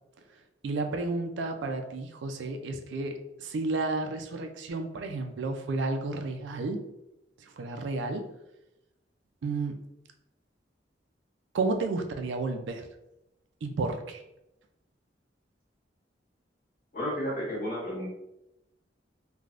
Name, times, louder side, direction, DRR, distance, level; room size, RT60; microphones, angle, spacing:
voice 1, 0.6-6.8 7.4-8.3 9.4-9.8 11.5-12.9 13.6-14.2, right 3 dB, 85° right, 6 dB, 0.4 m, -32 dB
voice 2, 16.9-18.1, equal, 50° left, -6 dB, 1.3 m, -32 dB
3.3 x 2.2 x 2.4 m, 0.88 s
head